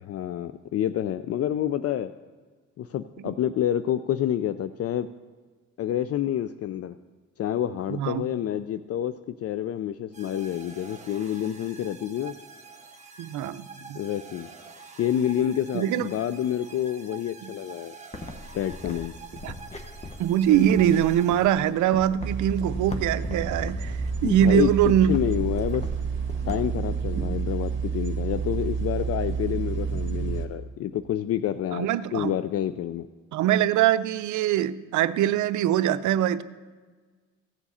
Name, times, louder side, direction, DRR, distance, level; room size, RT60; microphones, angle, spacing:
voice 1, 0.0-2.1 2.8-5.1 5.8-7.0 7.4-12.4 14.0-14.5 15.0-18.0 18.5-19.1 24.2-24.7 25.1-25.9 26.5-33.1, left 11 dB, 55° left, 12 dB, 0.4 m, -28 dB
voice 2, 7.9-8.2 13.2-14.0 15.7-16.1 17.4-17.5 19.4-19.6 20.2-25.1 31.7-32.4 33.3-36.4, right 10 dB, 75° right, 13 dB, 0.6 m, -23 dB
sound 1, 10.1-21.9, right 4 dB, 25° right, 1.5 m, -47 dB
sound 2, 18.1-26.6, left 2 dB, 20° left, 1.1 m, -40 dB
sound 3, 22.2-30.5, right 6 dB, 40° right, 1.7 m, -30 dB
15.5 x 7.1 x 4.2 m, 1.4 s
cardioid pair, 90°, 30 cm